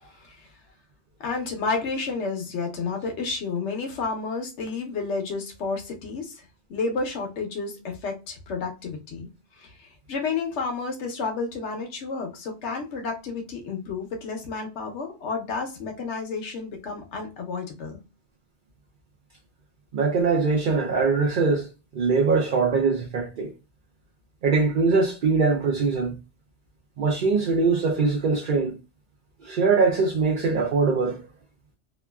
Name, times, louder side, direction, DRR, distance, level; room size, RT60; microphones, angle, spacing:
voice 1, 1.2-6.4 6.7-9.3 9.6-9.7 10.1-18.0, left 4 dB, 80° left, 1.0 m, -31 dB
voice 2, 19.9-21.7 21.9-23.5 24.4-26.1 27.0-28.8 29.4-31.2, right 4 dB, 55° right, 0.6 m, -22 dB
2.9 x 2.4 x 2.2 m
omnidirectional pair, 1.2 m